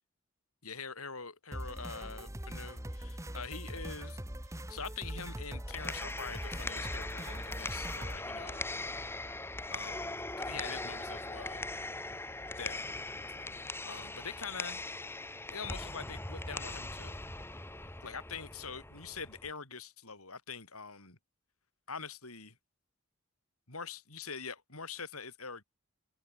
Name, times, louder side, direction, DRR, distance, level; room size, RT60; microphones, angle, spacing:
voice 1, 0.6-4.2 4.4-8.6 9.7-11.7 12.5-12.8 13.4-13.6 13.8-14.8 15.5-17.2 18.0-21.2 21.9-22.6 23.7-25.6, left 5 dB, 90° left, 7.3 m, -44 dB
sound 1, 1.5-8.2, right 1 dB, 15° right, 1.9 m, -42 dB
sound 2, 5.5-19.5, left 2 dB, 10° left, 1.8 m, -40 dB
open air
head